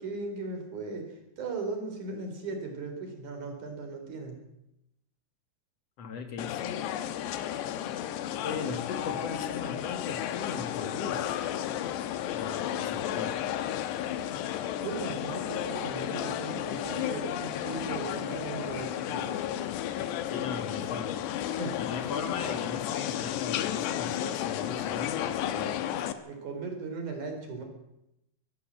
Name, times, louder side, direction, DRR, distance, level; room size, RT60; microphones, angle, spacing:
voice 1, 0.0-4.4 14.7-19.4 21.5-21.8 25.8-27.6, right 3 dB, 50° right, 4 dB, 5.2 m, -38 dB
voice 2, 6.0-6.8 8.4-11.4 12.3-13.4 20.3-21.2 21.8-25.8, left 5 dB, 55° left, 7 dB, 2.1 m, -38 dB
sound 1, 6.4-26.1, left 11 dB, 90° left, 3.3 m, -33 dB
24.0 x 14.5 x 7.6 m, 0.86 s
omnidirectional pair, 4.8 m